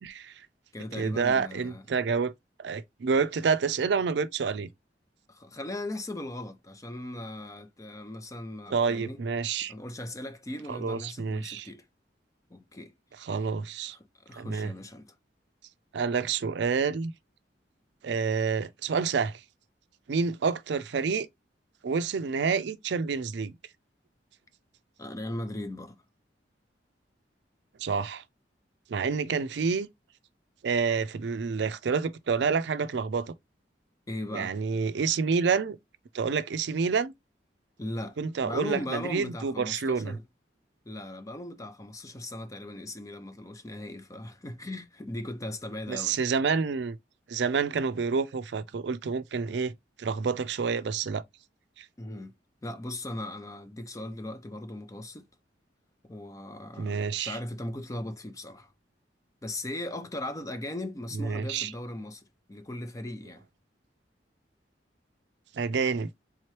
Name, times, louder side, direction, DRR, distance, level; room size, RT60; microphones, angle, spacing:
voice 1, 0.0-0.3 0.9-2.3 2.6-4.7 8.7-9.7 10.7-11.7 13.2-14.0 14.4-14.7 15.9-17.1 18.0-19.4 20.1-21.3 21.8-23.5 27.8-28.2 28.9-29.9 30.6-33.3 34.3-35.8 36.1-37.1 38.2-40.2 45.9-47.0 47.3-49.7 50.0-51.2 51.8-51.9 56.8-57.4 61.1-61.7 65.5-66.1, right 5 dB, 70° right, 0.4 m, -28 dB
voice 2, 0.7-1.8 5.3-9.2 9.7-11.9 12.5-12.9 13.9-15.2 25.0-26.0 34.1-34.5 37.8-40.2 40.9-46.2 52.0-52.3 52.6-55.3 56.0-58.7 59.4-63.4, left 1 dB, 20° left, 0.5 m, -38 dB
3.6 x 3.0 x 3.0 m
head